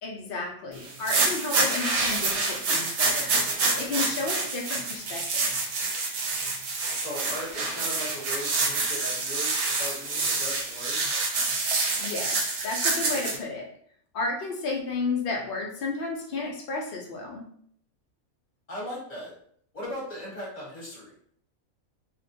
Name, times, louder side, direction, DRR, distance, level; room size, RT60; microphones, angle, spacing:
voice 1, 0.0-3.3 3.8-5.5 11.1-11.2 12.0-13.7 14.1-17.5, left 3 dB, 90° left, 0 dB, 0.4 m, -32 dB
sound 1, 0.9-13.4, right 3 dB, 90° right, 1.0 m, -27 dB
voice 2, 6.9-11.2 18.7-19.3 19.7-21.3, equal, 35° left, -5 dB, 0.9 m, -38 dB
2.4 x 2.1 x 2.6 m, 0.62 s
omnidirectional pair, 1.5 m